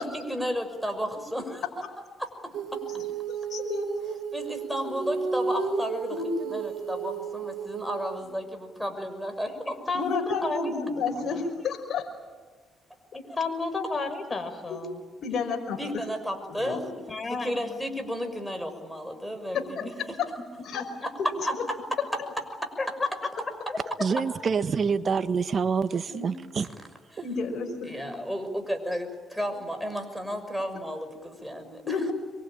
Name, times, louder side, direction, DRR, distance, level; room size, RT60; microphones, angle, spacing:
voice 1, 0.0-1.6 2.2-2.8 4.3-9.8 15.8-16.9 17.4-19.8 20.1-20.2 21.4-21.8 22.6-22.9 27.8-32.0, equal, ahead, 6 dB, 6.3 m, -33 dB
Female singing, 2.5-8.3, right 5 dB, 75° right, 4.4 m, -33 dB
voice 2, 3.5-3.9 6.1-6.3 9.9-12.1 14.7-14.8 15.2-15.8 16.5-16.9 19.8-19.9 20.2-20.3 20.6-20.8 26.1-26.3 27.2-28.2 31.9-32.1, left 4 dB, 60° left, 2 dB, 5.4 m, -31 dB
voice 3, 9.9-10.6 11.2-11.3 13.1-15.0 17.1-17.8 19.8-19.9 20.4-20.5 23.0-23.1, left 3 dB, 30° left, 8 dB, 5.6 m, -32 dB
voice 4, 24.0-26.7, right 5 dB, 50° right, 10 dB, 1.6 m, -26 dB
26.0 x 23.5 x 8.9 m, 1.4 s
supercardioid pair, 75°, 0 cm